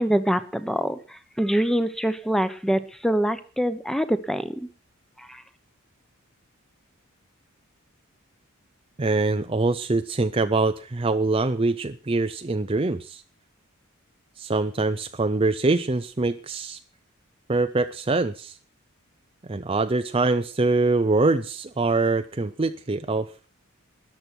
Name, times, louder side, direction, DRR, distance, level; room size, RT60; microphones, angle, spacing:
voice 1, 0.0-4.5 5.3-5.4, equal, ahead, 12 dB, 1.0 m, -25 dB
voice 2, 9.0-13.2 14.4-16.8 17.5-18.6 19.5-23.3, right 3 dB, 25° right, 9 dB, 0.6 m, -24 dB
13.5 x 10.5 x 6.2 m, 0.38 s
head